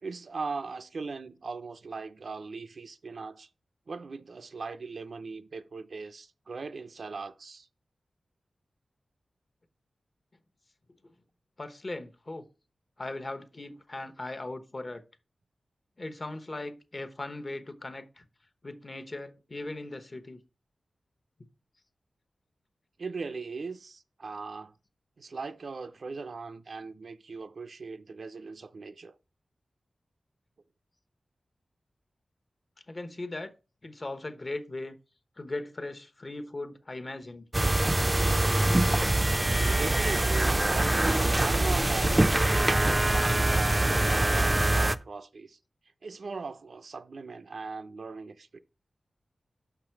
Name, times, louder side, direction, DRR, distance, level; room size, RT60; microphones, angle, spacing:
voice 1, 0.0-3.5 3.9-7.7 23.0-24.7 25.2-29.2 39.7-45.6 46.0-48.6, right 4 dB, 70° right, 0.5 m, -39 dB
voice 2, 11.6-12.5 13.0-15.0 16.0-18.3 18.6-20.4 32.9-33.5 33.8-34.9 35.4-37.4, left 2 dB, 40° left, 1.0 m, -38 dB
sound 1, 37.5-45.0, right 1 dB, 20° right, 0.4 m, -24 dB
5.8 x 5.8 x 4.5 m
cardioid pair, 60°, 0 cm